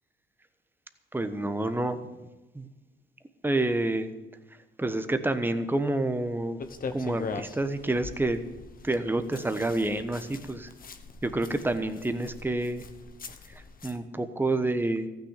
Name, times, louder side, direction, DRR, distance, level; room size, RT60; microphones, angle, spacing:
voice 1, 1.1-2.0 2.5-2.7 3.4-4.1 4.8-6.6 6.9-8.4 8.8-10.7 11.2-12.8 13.8-15.1, right 2 dB, 10° right, 9 dB, 1.2 m, -28 dB
sound 1, 6.6-14.0, left 4 dB, 45° left, 1.2 m, -42 dB
14.5 x 6.6 x 9.9 m, 1.0 s
cardioid pair, 90°, 20 cm